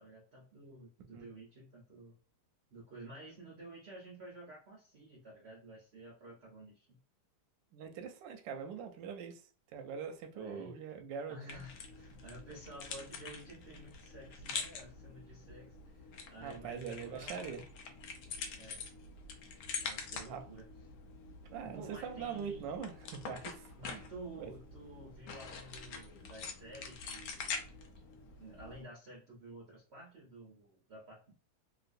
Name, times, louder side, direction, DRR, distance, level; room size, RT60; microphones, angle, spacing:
voice 1, 0.0-2.2 2.7-7.0 10.3-10.7 11.3-17.6 18.6-18.8 19.8-20.6 21.6-22.6 23.8-27.7 28.4-31.3, right 1 dB, 55° right, 0.7 m, -52 dB
voice 2, 7.7-9.4 9.7-11.6 16.4-17.6 20.3-20.4 21.5-24.0 24.4-24.5, right 7 dB, 70° right, 1.2 m, -43 dB
sound 1, 11.5-28.8, left 5 dB, 70° left, 1.0 m, -46 dB
3.1 x 3.0 x 2.5 m
omnidirectional pair, 2.3 m